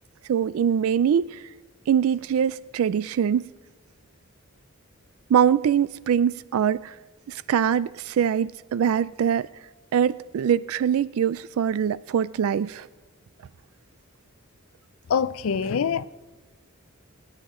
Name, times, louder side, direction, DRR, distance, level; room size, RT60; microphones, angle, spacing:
voice 1, 0.3-1.4 1.9-3.4 5.3-6.9 7.3-9.5 9.9-12.9, right 8 dB, 85° right, 0.3 m, -23 dB
voice 2, 15.1-16.1, left 6 dB, 80° left, 0.5 m, -24 dB
21.0 x 9.9 x 3.7 m
head